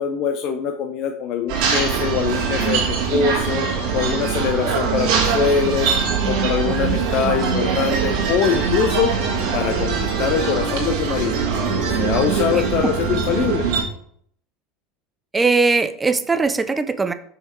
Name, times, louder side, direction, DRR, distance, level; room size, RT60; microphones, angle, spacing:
voice 1, 0.0-3.7 3.9-6.0 6.2-9.1 9.5-11.4 11.9-13.6, left 7 dB, 50° left, 5 dB, 0.6 m, -23 dB
sound 1, 1.5-13.8, right 5 dB, 60° right, 2.1 m, -22 dB
voice 2, 12.5-12.9 15.3-17.1, right 4 dB, 15° right, 11 dB, 0.7 m, -20 dB
5.6 x 5.5 x 4.6 m, 0.63 s
hypercardioid pair, 75°, 0 cm